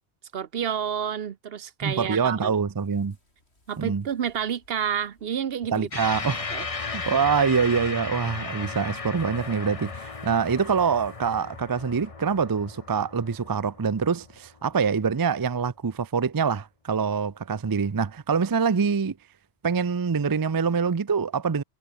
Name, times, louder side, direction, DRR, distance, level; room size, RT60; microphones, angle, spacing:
voice 1, 0.3-2.5 3.7-5.9 6.5-6.7, right 8 dB, 65° right, 1.0 m, -29 dB
voice 2, 1.8-3.2 3.8-4.1 5.7-6.4 6.9-19.2 19.6-21.6, right 6 dB, 30° right, 0.4 m, -25 dB
sound 1, 2.7-11.9, left 2 dB, 75° left, 6.0 m, -63 dB
sound 2, 5.9-14.6, left 4 dB, 35° left, 1.1 m, -36 dB
omnidirectional pair, 1.1 m